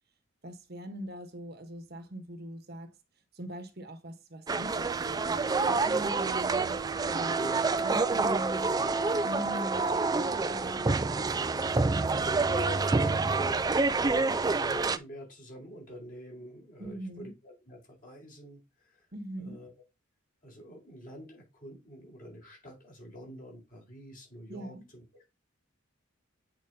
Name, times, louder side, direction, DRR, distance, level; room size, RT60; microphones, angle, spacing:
voice 1, 0.4-2.9 3.3-6.8 7.1-7.4 7.8-8.7 9.1-10.9 16.8-17.3 19.1-19.6 24.5-24.8, right 1 dB, 50° right, 1.1 m, -42 dB
sound 1, 4.5-15.0, right 3 dB, 20° right, 0.3 m, -28 dB
voice 2, 12.5-19.1 19.4-19.7 20.4-25.2, equal, 40° left, 4.2 m, -46 dB
8.7 x 4.7 x 2.7 m
head